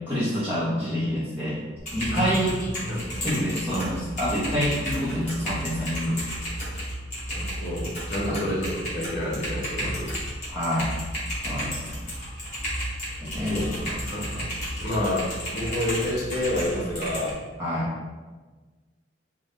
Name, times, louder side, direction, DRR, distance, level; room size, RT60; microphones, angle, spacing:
voice 1, 0.1-1.6 1.9-2.6 3.2-6.2 8.3-8.4 10.5-10.9 11.4-11.9 13.2-13.7 17.6-17.9, equal, 10° right, -10 dB, 0.7 m, -27 dB
Typing, 1.8-17.3, equal, 40° left, 1.3 m, -33 dB
voice 2, 2.1-3.3 7.3-10.1 13.5-14.5 14.8-17.4, left 1 dB, 55° left, -5 dB, 0.9 m, -29 dB
3.7 x 2.2 x 3.6 m, 1.3 s
head